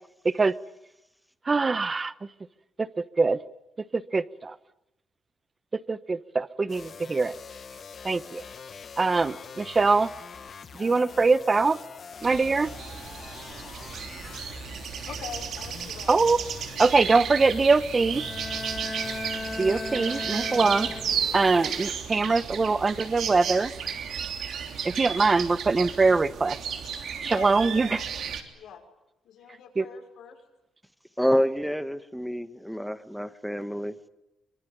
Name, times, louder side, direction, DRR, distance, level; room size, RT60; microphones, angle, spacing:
voice 1, 1.5-2.1 2.8-3.4 3.9-4.6 5.9-7.3 8.0-8.4 9.0-10.1 10.7-11.8 12.2-12.7 16.1-16.4 16.8-18.2 19.6-20.9 21.3-23.7 24.8-26.6 27.2-28.0 29.8-29.9, right 4 dB, 25° right, 16 dB, 0.9 m, -23 dB
sound 1, 6.7-21.9, left 6 dB, 45° left, 1.5 m, -44 dB
sound 2, 12.2-28.4, right 7 dB, 75° right, 3.3 m, -34 dB
voice 2, 14.8-16.2 19.9-20.0 27.2-28.8 29.2-30.4, left 7 dB, 90° left, 3 dB, 5.7 m, -44 dB
Bowed string instrument, 18.1-21.5, left 2 dB, 20° left, 1.7 m, -36 dB
voice 3, 31.2-34.1, equal, ahead, 11 dB, 1.4 m, -28 dB
24.5 x 23.0 x 9.2 m, 0.89 s
cardioid pair, 115°, 0 cm